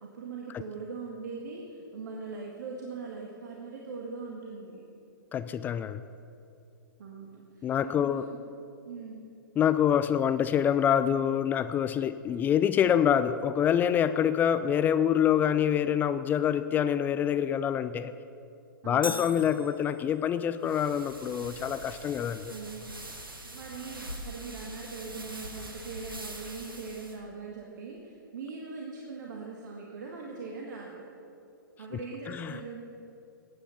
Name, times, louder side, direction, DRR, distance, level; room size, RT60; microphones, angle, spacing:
voice 1, 0.0-4.8 7.0-8.4 8.8-9.3 18.8-19.3 22.5-23.0 23.4-31.0 31.8-32.8, right 4 dB, 60° right, -1 dB, 1.8 m, -41 dB
voice 2, 5.3-6.0 7.6-8.3 9.6-18.1 18.9-22.5 32.3-32.6, left 9 dB, 15° left, 12 dB, 0.3 m, -26 dB
sound 1, 19.0-20.4, left 4 dB, 90° left, 0.5 m, -40 dB
sound 2, 20.6-27.2, right 1 dB, 90° right, 1.8 m, -43 dB
16.5 x 10.0 x 5.8 m, 2.6 s
figure-of-eight pair, 115°, 11 cm